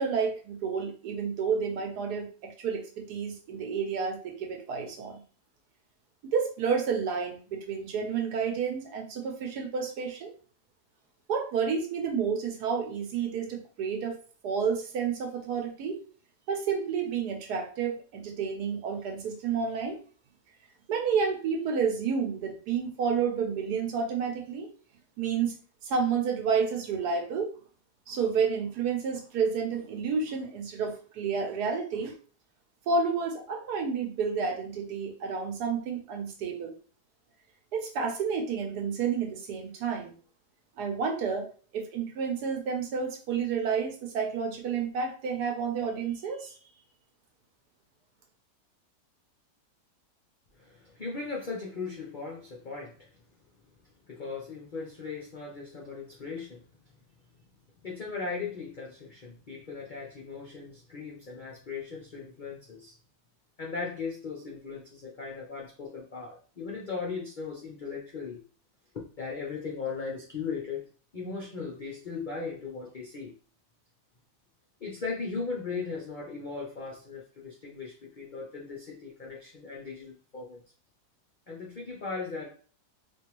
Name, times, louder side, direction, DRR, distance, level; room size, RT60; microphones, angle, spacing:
voice 1, 0.0-5.2 6.2-10.3 11.3-14.2 14.4-16.0 16.5-20.0 20.9-24.7 25.2-25.5 25.8-27.5 28.1-32.1 32.9-36.7 37.7-40.1 40.8-41.5 41.7-46.6, right 6 dB, 80° right, 2 dB, 1.3 m, -30 dB
voice 2, 50.6-53.0 54.1-56.6 57.8-63.0 63.6-68.4 68.9-70.9 71.1-73.3 74.8-80.6 81.5-82.5, left 4 dB, 65° left, -1 dB, 0.4 m, -38 dB
3.6 x 2.6 x 3.0 m, 0.40 s
omnidirectional pair, 1.7 m